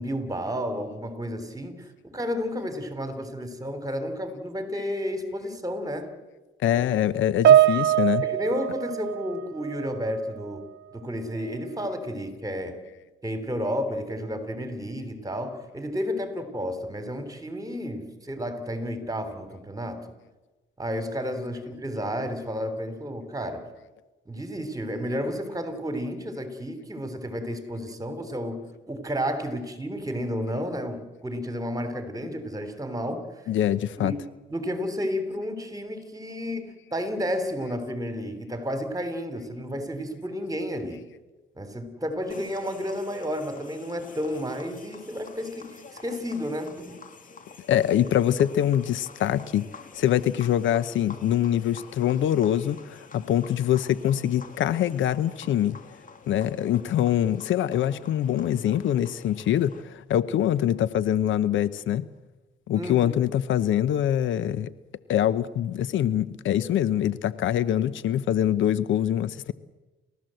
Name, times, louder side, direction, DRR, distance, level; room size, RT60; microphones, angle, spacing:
voice 1, 0.0-6.1 6.7-6.8 8.2-12.8 13.2-20.0 20.8-23.7 24.3-28.6 28.9-33.2 34.0-34.2 34.5-41.1 41.6-47.0 62.8-63.1, equal, 20° right, 9 dB, 3.7 m, -32 dB
voice 2, 6.6-8.3 33.5-34.2 47.7-49.7 49.9-55.8 56.3-62.1 62.7-64.7 65.1-69.5, left 11 dB, 75° left, 16 dB, 0.8 m, -24 dB
Piano, 7.4-10.1 10.3-10.7 11.5-11.6, right 11 dB, 65° right, 0.8 m, -22 dB
sound 1, 42.3-59.8, left 4 dB, 40° left, 2.8 m, -48 dB
29.5 x 14.0 x 7.9 m, 1.2 s
cardioid pair, 90°, 20 cm